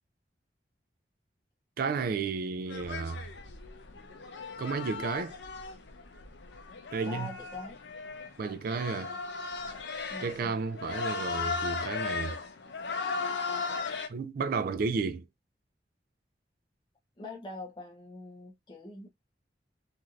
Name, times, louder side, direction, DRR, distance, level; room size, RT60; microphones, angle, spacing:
voice 1, 1.8-3.3 4.6-5.4 6.9-7.3 8.4-9.1 10.2-12.4 14.1-15.3, right 4 dB, 55° right, 0.3 m, -32 dB
sound 1, 2.7-14.1, left 4 dB, 80° left, 0.6 m, -37 dB
voice 2, 7.0-7.8 10.1-10.5 17.2-19.1, left 2 dB, 25° left, 0.7 m, -43 dB
3.1 x 2.6 x 2.4 m
head